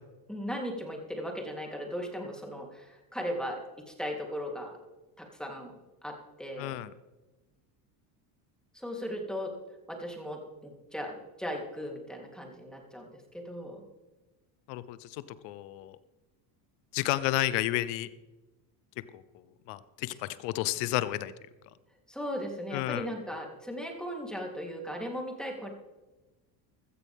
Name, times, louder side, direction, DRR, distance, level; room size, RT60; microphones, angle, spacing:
voice 1, 0.3-4.8 5.2-5.8 6.0-6.7 8.7-9.5 9.9-13.8 22.1-25.7, equal, ahead, 0 dB, 3.3 m, -37 dB
voice 2, 6.6-6.9 14.7-16.0 16.9-18.1 19.7-21.3 22.7-23.1, left 15 dB, 75° left, 15 dB, 0.9 m, -31 dB
16.0 x 14.0 x 3.6 m, 1.1 s
supercardioid pair, 110°, 50 cm